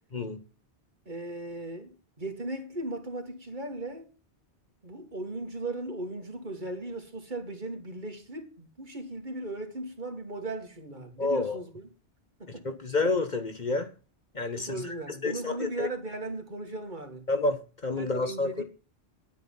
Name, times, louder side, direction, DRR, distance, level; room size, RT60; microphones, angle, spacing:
voice 1, 1.1-4.1 4.8-11.8 12.4-12.8 14.5-17.3 18.0-18.6, right 2 dB, 45° right, 2.2 m, -37 dB
voice 2, 11.2-11.6 12.8-13.9 14.3-14.9 15.2-15.9 17.3-18.6, left 3 dB, 45° left, 1.2 m, -29 dB
10.0 x 9.2 x 5.5 m
omnidirectional pair, 1.1 m